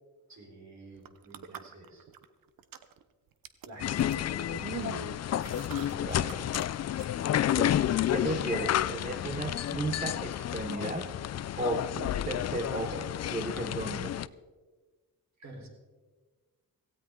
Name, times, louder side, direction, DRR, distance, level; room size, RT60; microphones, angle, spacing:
voice 1, 0.3-2.1 3.7-5.1 5.7-6.6 15.4-15.7, right 2 dB, 55° right, 1 dB, 4.2 m, -49 dB
sound 1, 1.0-2.3 2.6-3.0 3.4-6.6 7.0-7.1, right 9 dB, 85° right, 0.9 m, -43 dB
sound 2, 3.8-14.3, left 11 dB, 50° left, 0.4 m, -31 dB
voice 2, 6.0-6.5 7.5-7.8 8.1-11.1 11.6-14.1, right 2 dB, 25° right, 5 dB, 1.0 m, -35 dB
17.0 x 16.0 x 3.8 m, 1.4 s
wide cardioid pair, 120°, 33 cm